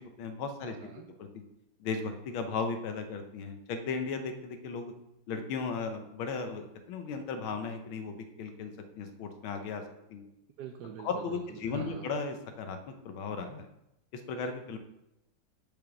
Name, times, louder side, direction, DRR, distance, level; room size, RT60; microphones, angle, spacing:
voice 1, 0.0-0.8 1.2-1.4 1.8-4.9 5.3-9.8 10.1-10.2 11.0-13.7 14.1-14.8, left 4 dB, 85° left, 7 dB, 1.7 m, -36 dB
voice 2, 0.6-1.1 10.6-12.1, right 8 dB, 70° right, 3 dB, 1.0 m, -45 dB
7.2 x 5.3 x 5.9 m, 0.88 s
omnidirectional pair, 2.2 m